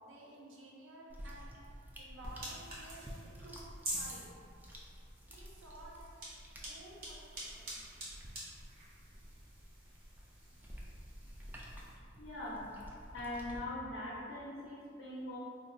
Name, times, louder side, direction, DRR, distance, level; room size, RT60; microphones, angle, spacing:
voice 1, 0.0-1.5 2.0-3.0 3.4-3.6 3.9-4.2 5.3-6.1 6.6-7.7, right 1 dB, 85° right, -4 dB, 0.7 m, -53 dB
sound 1, 1.1-13.6, equal, 10° right, 0.3 m, -52 dB
sound 2, 2.2-11.9, right 1 dB, 50° right, 0.9 m, -47 dB
voice 2, 12.2-12.7 13.1-15.4, left 1 dB, 75° left, -7 dB, 0.6 m, -42 dB
2.5 x 2.3 x 3.8 m, 2.3 s
head